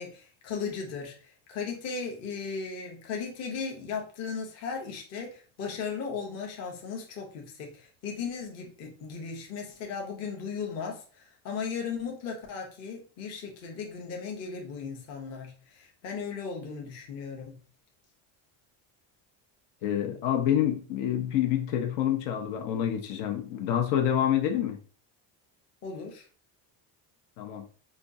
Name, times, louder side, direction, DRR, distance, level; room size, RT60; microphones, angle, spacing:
voice 1, 0.0-17.6 25.8-26.2, left 5 dB, 35° left, 0.7 m, -37 dB
voice 2, 19.8-24.8 27.4-27.6, left 10 dB, 75° left, 0.8 m, -27 dB
5.0 x 2.3 x 2.5 m
cardioid pair, 180°, 45 cm